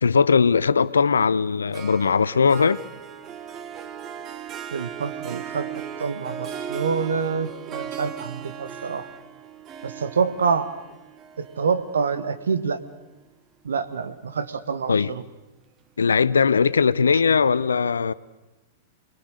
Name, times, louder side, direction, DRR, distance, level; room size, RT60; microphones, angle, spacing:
voice 1, 0.0-2.8 14.9-15.1 16.0-18.1, left 5 dB, 75° left, 0.7 m, -19 dB
Harp, 1.7-13.2, right 8 dB, 30° right, 1.3 m, -37 dB
voice 2, 4.7-5.7 6.0-9.1 9.8-10.7 11.4-12.8 13.6-15.2, right 5 dB, 70° right, 1.6 m, -26 dB
28.0 x 21.5 x 6.6 m
figure-of-eight pair, 100°, 0 cm